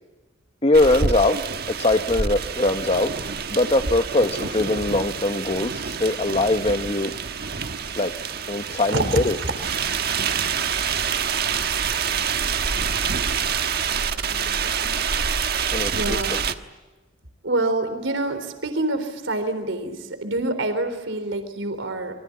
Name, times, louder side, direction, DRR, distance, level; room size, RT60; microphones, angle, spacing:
voice 1, 0.6-1.4 1.7-3.1 3.5-7.1 8.0-8.1 8.5-9.4 15.7-16.4, left 2 dB, 30° left, 7 dB, 1.0 m, -21 dB
sound 1, 0.7-16.5, right 6 dB, 55° right, 1.3 m, -27 dB
voice 2, 8.7-9.5 13.9-14.9 15.9-16.4 17.4-22.1, right 2 dB, 80° right, 9 dB, 3.8 m, -27 dB
28.0 x 24.5 x 8.4 m, 1.2 s
head